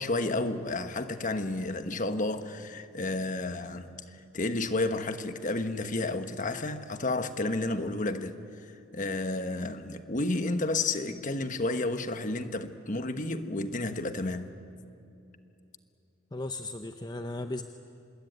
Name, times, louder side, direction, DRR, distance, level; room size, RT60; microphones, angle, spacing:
voice 1, 0.0-4.0 4.3-8.3 8.9-14.5, left 2 dB, 40° left, 1.2 m, -31 dB
voice 2, 16.3-17.6, left 2 dB, 20° left, 0.7 m, -36 dB
26.0 x 21.0 x 9.4 m
head